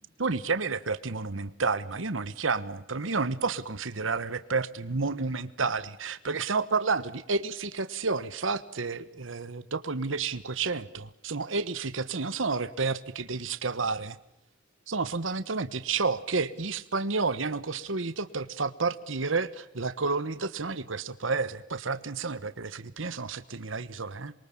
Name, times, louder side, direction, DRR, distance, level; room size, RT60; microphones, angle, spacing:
voice 1, 0.0-14.2 14.9-24.3, right 4 dB, 80° right, 13 dB, 1.3 m, -30 dB
27.5 x 23.5 x 8.7 m, 0.80 s
head